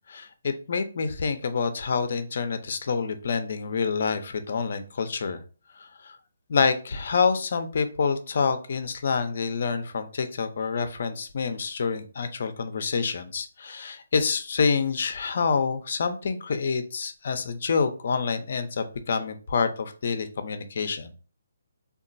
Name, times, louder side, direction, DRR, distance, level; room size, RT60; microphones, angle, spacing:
voice 1, 0.1-5.4 5.8-6.2 6.5-21.1, left 5 dB, 60° left, 9 dB, 0.5 m, -27 dB
2.9 x 2.3 x 2.5 m, 0.36 s
hypercardioid pair, 155°, 0 cm